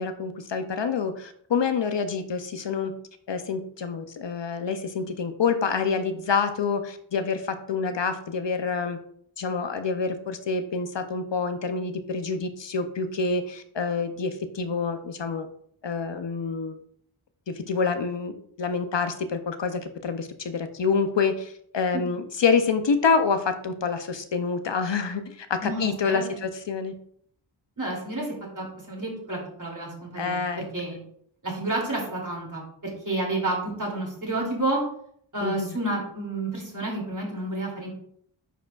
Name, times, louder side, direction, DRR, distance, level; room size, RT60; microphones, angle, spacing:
voice 1, 0.0-2.9 3.3-9.0 9.4-15.5 15.8-16.8 17.5-26.9 30.2-30.6 35.4-35.7, left 5 dB, 60° left, 9 dB, 0.6 m, -27 dB
voice 2, 25.6-26.2 27.8-28.3 28.5-31.0 31.4-34.8 35.3-37.9, right 2 dB, 40° right, -2 dB, 2.7 m, -30 dB
9.9 x 4.8 x 2.4 m, 0.65 s
wide cardioid pair, 75°, 49 cm